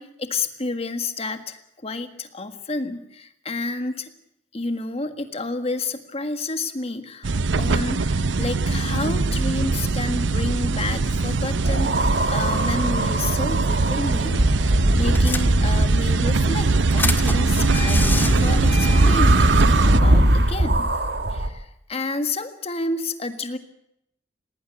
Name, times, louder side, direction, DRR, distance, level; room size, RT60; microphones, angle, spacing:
voice 1, 0.0-4.1 4.5-14.4 14.6-20.9 21.3-23.6, left 2 dB, 35° left, 8 dB, 1.7 m, -30 dB
sound 1, 7.2-20.0, right 3 dB, 85° right, 0.7 m, -21 dB
sound 2, 11.6-16.4 18.7-21.5, right 1 dB, 65° right, 1.9 m, -21 dB
sound 3, 14.2-14.4 14.7-14.8 15.2-15.9 16.4-19.6, left 1 dB, 10° left, 1.7 m, -25 dB
18.5 x 18.5 x 8.2 m, 0.78 s
head